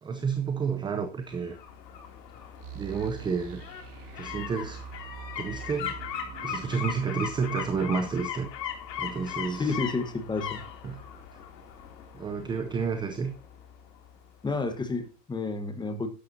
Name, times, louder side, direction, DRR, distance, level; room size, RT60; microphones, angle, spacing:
voice 1, 0.0-1.6 2.7-3.6 4.2-4.9 5.4-6.0 6.4-8.7 9.0-9.8 10.8-11.0 12.2-13.3, right 5 dB, 10° right, 7 dB, 0.6 m, -30 dB
sound 1, 1.3-14.1 14.5-14.6, left 8 dB, 85° left, 2.9 m, -39 dB
sound 2, 2.6-9.4, right 11 dB, 65° right, 2.5 m, -46 dB
voice 2, 9.5-10.6 14.4-16.1, left 3 dB, 10° left, 8 dB, 1.2 m, -30 dB
12.5 x 10.5 x 2.7 m, 0.36 s
supercardioid pair, 140°, 49 cm